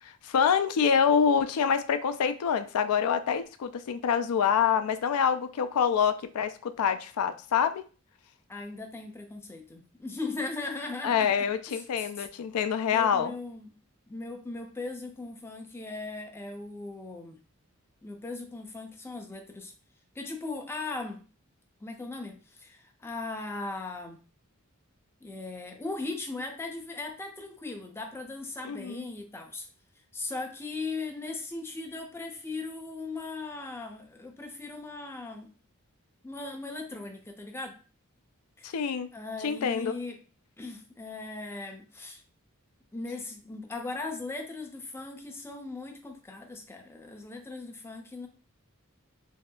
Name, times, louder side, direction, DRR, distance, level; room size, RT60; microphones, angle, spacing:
voice 1, 0.0-7.8 11.0-13.3 28.6-29.0 38.6-39.1 39.4-40.0, left 7 dB, 80° left, 10 dB, 0.3 m, -26 dB
voice 2, 8.5-12.1 12.9-13.7 14.1-17.4 18.0-19.7 20.2-21.2 21.8-24.2 25.2-29.7 30.1-35.5 36.2-37.8 38.6-38.7 39.1-40.2 40.6-42.2 42.9-48.3, left 3 dB, 10° left, 4 dB, 0.4 m, -38 dB
3.2 x 2.7 x 2.2 m, 0.36 s
head